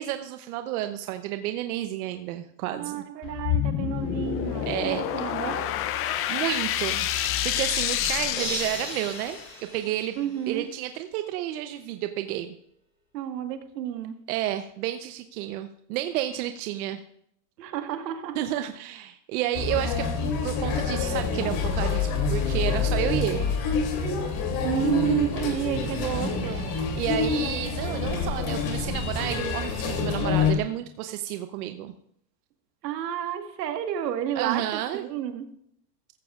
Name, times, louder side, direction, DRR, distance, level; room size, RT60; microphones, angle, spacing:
voice 1, 0.0-3.0 4.7-5.0 6.3-7.1 7.4-9.4 9.7-10.2 10.5-12.5 14.3-17.0 18.4-23.5 26.5-26.6 27.0-31.9 34.4-35.0, right 13 dB, 60° right, 8 dB, 0.9 m, -31 dB
voice 2, 2.7-5.8 10.2-10.6 13.1-14.2 17.6-18.4 24.6-26.7 32.8-34.7 34.9-35.5, right 10 dB, 80° right, 6 dB, 1.7 m, -30 dB
sound 1, 3.2-9.5, left 11 dB, 30° left, 0.6 m, -28 dB
sound 2, 8.4-10.7, right 2 dB, 10° right, 6.1 m, -37 dB
sound 3, 19.5-30.5, left 5 dB, 45° left, 3.0 m, -27 dB
14.5 x 14.5 x 2.5 m, 0.71 s
supercardioid pair, 135°, 49 cm